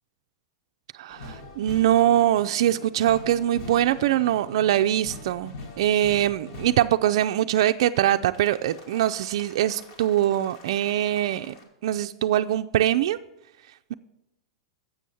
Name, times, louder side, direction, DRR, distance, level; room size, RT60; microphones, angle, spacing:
voice 1, 0.9-11.5 11.8-13.2, right 12 dB, 70° right, 8 dB, 0.3 m, -23 dB
sound 1, 1.1-7.1 8.0-11.6, left 2 dB, 65° left, 1.8 m, -44 dB
7.7 x 6.2 x 6.8 m, 0.92 s
hypercardioid pair, 120°, 3 cm